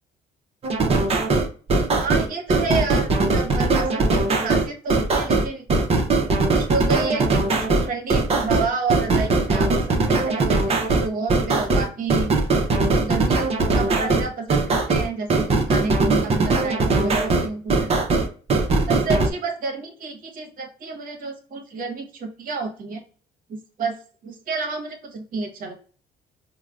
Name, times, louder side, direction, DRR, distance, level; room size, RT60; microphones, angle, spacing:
sound 1, 0.6-19.3, right 3 dB, 35° right, 0.6 m, -20 dB
voice 1, 2.0-5.7 6.5-12.3 12.8-18.3 18.9-23.0 23.5-24.0 24.2-25.8, right 4 dB, 55° right, 3 dB, 0.9 m, -30 dB
4.8 x 2.1 x 2.3 m, 0.42 s
cardioid pair, 110°, 17 cm